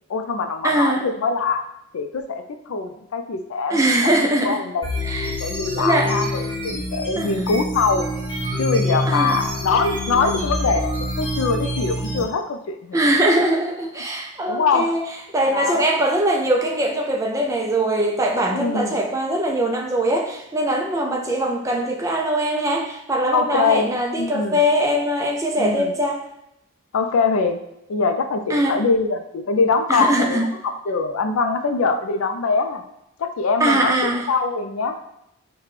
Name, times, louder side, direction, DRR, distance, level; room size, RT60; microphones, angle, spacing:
voice 1, 0.1-1.6 1.9-4.2 4.4-4.9 5.3-8.1 8.6-13.0 14.5-15.0 15.5-15.9 18.5-19.0 23.3-23.9 24.2-24.6 25.6-25.9 26.9-27.6 27.9-32.8 33.2-35.0, left 4 dB, 85° left, 7 dB, 0.4 m, -23 dB
voice 2, 0.6-1.1 3.7-4.6 5.0-5.4 5.8-6.1 7.2-7.4 9.1-9.3 12.9-15.1 15.3-26.2 28.5-28.8 29.9-30.5 33.6-34.3, right 1 dB, 15° right, 1 dB, 0.3 m, -21 dB
sound 1, 4.8-12.2, left 1 dB, 20° left, 1.0 m, -26 dB
5.1 x 2.2 x 3.2 m, 0.83 s
head